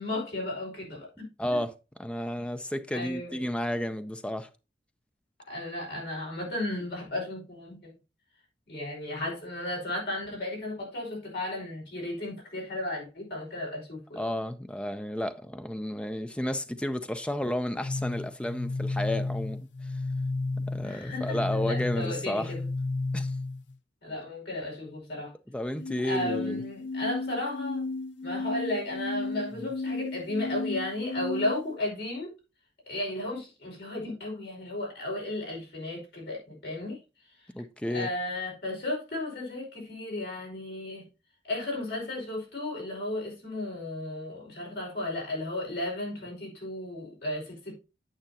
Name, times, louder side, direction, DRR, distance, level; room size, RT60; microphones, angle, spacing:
voice 1, 0.0-1.6 2.9-3.4 5.5-7.9 8.7-14.2 20.8-22.6 24.0-25.3 26.0-27.8 28.2-32.3 32.9-37.0 37.4-37.5 37.9-41.0 41.5-47.7, left 1 dB, 60° left, 5.1 m, -34 dB
voice 2, 1.4-1.7 2.0-4.5 14.2-19.9 20.7-22.5 23.1-23.3 25.5-26.6 29.5-29.7 37.5-38.1, left 1 dB, 5° left, 0.5 m, -32 dB
sound 1, 17.8-23.7 25.8-31.8, left 3 dB, 90° left, 0.7 m, -33 dB
9.0 x 8.0 x 2.8 m
head